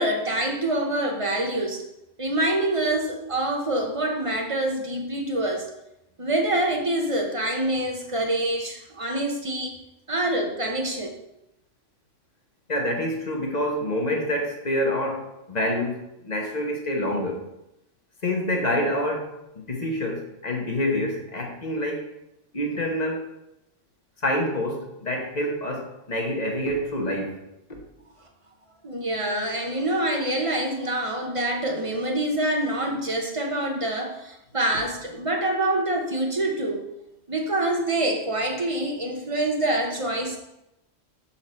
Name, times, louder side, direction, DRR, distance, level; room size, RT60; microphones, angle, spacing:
voice 1, 0.0-1.8 2.2-5.7 6.2-9.8 10.1-11.1 28.8-36.8 37.3-40.4, right 1 dB, 30° right, 1 dB, 0.8 m, -26 dB
voice 2, 12.7-17.4 18.2-22.1 22.5-23.3 24.2-27.4 27.7-27.8, left 1 dB, 35° left, 1 dB, 1.2 m, -27 dB
6.6 x 4.4 x 4.2 m, 0.88 s
omnidirectional pair, 1.3 m